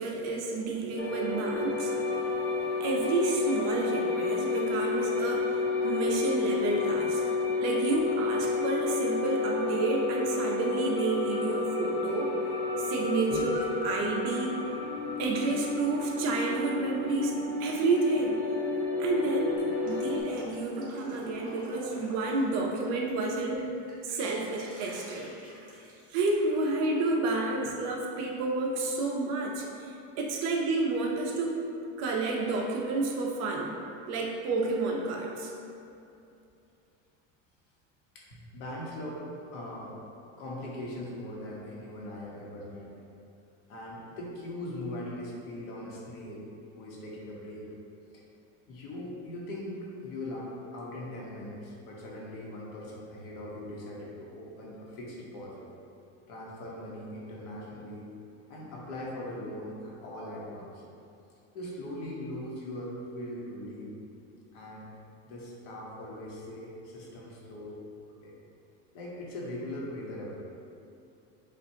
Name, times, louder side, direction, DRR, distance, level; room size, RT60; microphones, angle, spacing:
voice 1, 0.0-1.9 2.8-7.2 7.6-12.3 12.8-14.7 15.2-18.4 19.0-19.6 19.8-23.7 24.0-25.3 26.1-31.6 32.0-33.8 34.1-35.5, right 3 dB, 50° right, -1 dB, 0.6 m, -30 dB
sound 1, 1.0-20.2, left 3 dB, 35° left, 0.7 m, -31 dB
Drip, 19.6-23.1 23.5-26.6, right 1 dB, 25° right, 1.2 m, -50 dB
voice 2, 38.1-39.2 39.5-40.0 40.4-42.9 43.7-46.5 46.8-47.7 48.7-55.7 56.3-58.1 58.5-60.8 61.5-63.9 64.5-64.9 65.3-67.8 68.1-68.3 68.9-70.4, left 1 dB, 70° left, -4 dB, 1.2 m, -40 dB
7.4 x 2.5 x 2.8 m, 2.7 s
cardioid pair, 160°, 35 cm